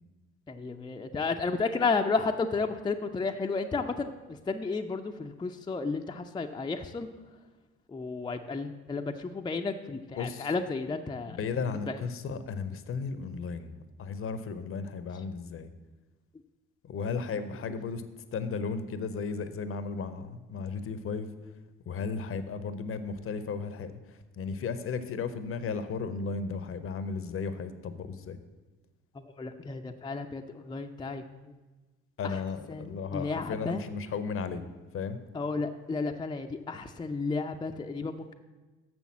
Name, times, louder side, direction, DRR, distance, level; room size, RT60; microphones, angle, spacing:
voice 1, 0.5-7.1 7.9-11.4 11.9-12.0 29.1-31.5 32.2-32.4 32.7-33.8 35.3-38.3, left 4 dB, 15° left, 4 dB, 0.5 m, -32 dB
voice 2, 10.2-10.5 11.3-13.7 14.0-15.7 16.9-18.0 18.3-21.3 21.9-24.0 24.4-28.4 32.2-34.6 34.9-35.2, left 5 dB, 40° left, 12 dB, 0.8 m, -34 dB
6.9 x 6.1 x 7.2 m, 1.2 s
figure-of-eight pair, 50°, 33 cm